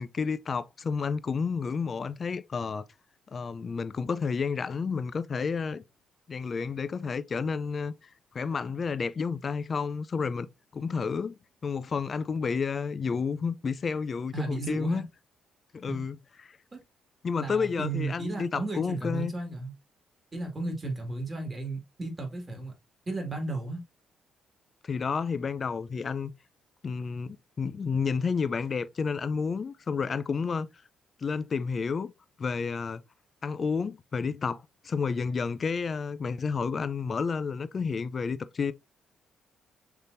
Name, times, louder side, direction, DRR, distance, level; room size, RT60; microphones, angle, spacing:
voice 1, 0.0-2.8 3.3-5.8 6.3-15.1 15.7-16.6 17.2-19.3 24.8-26.3 26.8-30.7 31.2-32.1 32.4-33.0 33.4-38.7, left 5 dB, 40° left, 0.5 m, -31 dB
voice 2, 14.3-15.0 15.9-16.0 16.7-16.8 17.4-19.7 20.3-22.7 23.1-23.8, right 2 dB, 25° right, 2.2 m, -34 dB
5.8 x 3.4 x 2.6 m
cardioid pair, 90°, 0 cm